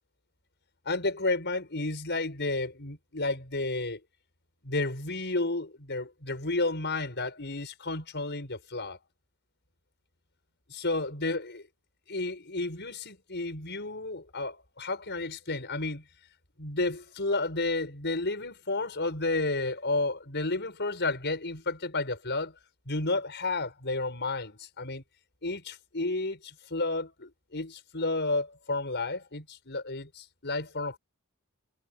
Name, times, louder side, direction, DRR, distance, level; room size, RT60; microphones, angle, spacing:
voice 1, 0.8-4.0 4.6-9.0 10.7-11.7 12.1-16.0 16.6-22.5 22.9-25.0 25.4-31.0, left 2 dB, 50° left, 6.4 m, -31 dB
head